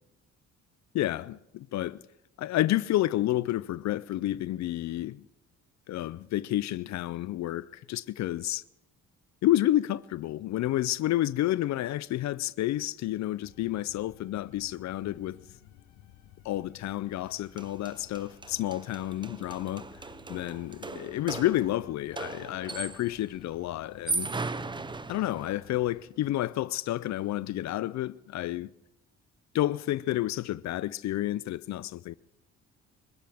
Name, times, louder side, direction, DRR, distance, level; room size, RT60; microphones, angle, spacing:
voice 1, 0.9-2.0 2.4-5.2 5.9-8.6 9.4-15.4 16.4-19.9 20.3-24.3 25.1-28.7 29.5-32.1, left 14 dB, 65° left, 0.5 m, -30 dB
sound 1, 13.4-26.0, left 12 dB, 85° left, 1.0 m, -55 dB
sound 2, 17.3-17.4 17.6-23.2 23.9-25.7, right 3 dB, 15° right, 0.6 m, -38 dB
sound 3, 19.4-24.6, right 2 dB, 75° right, 3.5 m, -63 dB
29.0 x 12.5 x 3.5 m
cardioid pair, 90°, 30 cm